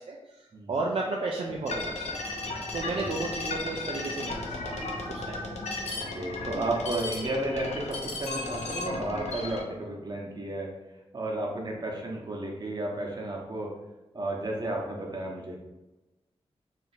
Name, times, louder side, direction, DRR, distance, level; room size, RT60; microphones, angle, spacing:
voice 1, 0.0-2.1 2.7-4.7 5.1-5.6, right 3 dB, 55° right, -2 dB, 0.4 m, -33 dB
sound 1, 1.7-9.6, left 2 dB, 85° left, 0.6 m, -35 dB
voice 2, 5.9-10.7 11.1-13.7 14.1-15.5, right 1 dB, 40° right, -1 dB, 0.8 m, -33 dB
2.8 x 2.4 x 4.1 m, 1.0 s
wide cardioid pair, 100°, 11 cm